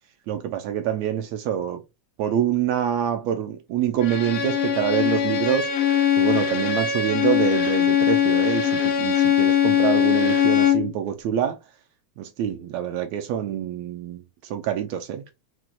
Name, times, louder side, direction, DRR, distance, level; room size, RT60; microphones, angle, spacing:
voice 1, 0.3-1.8 2.2-5.7 6.2-11.6 12.2-15.2, right 10 dB, 75° right, 1.7 m, -26 dB
Bowed string instrument, 4.0-10.9, left 9 dB, 75° left, 1.2 m, -21 dB
5.9 x 2.2 x 2.5 m
omnidirectional pair, 3.4 m